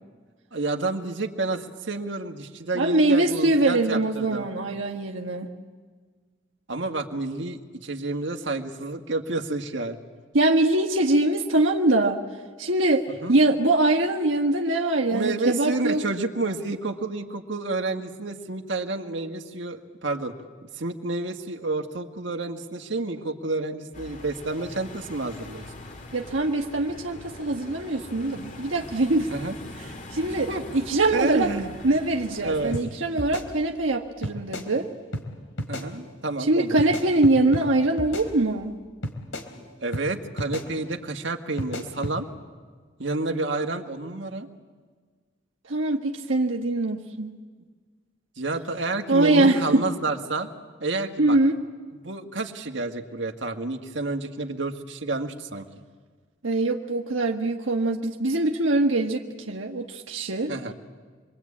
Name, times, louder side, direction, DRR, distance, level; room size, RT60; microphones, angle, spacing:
voice 1, 0.5-4.5 6.7-10.0 13.2-13.4 15.1-20.3 20.7-25.7 29.3-29.6 30.5-30.6 31.1-31.7 32.4-32.8 35.7-36.8 39.8-42.3 43.0-44.5 48.4-50.5 50.8-51.4 52.0-55.7 60.5-60.7, right 2 dB, 70° right, 4 dB, 1.7 m, -29 dB
voice 2, 2.7-5.5 10.3-12.2 12.6-16.0 26.1-29.3 30.1-30.5 30.7-31.5 31.8-34.9 36.5-38.8 45.7-47.4 49.1-49.8 51.2-51.6 56.4-60.5, right 2 dB, 90° right, 2 dB, 1.5 m, -23 dB
sound 1, 23.9-32.8, left 1 dB, 40° left, 2.2 m, -42 dB
sound 2, 32.7-32.9 33.2-33.9 34.2-34.7 35.1-35.3 35.6-35.9 36.8-37.7 38.0-38.7 39.0-39.5 39.9-40.1 40.4-40.7 41.6-42.2, equal, 80° left, 3.2 m, -33 dB
27.5 x 23.0 x 8.6 m, 1.5 s
head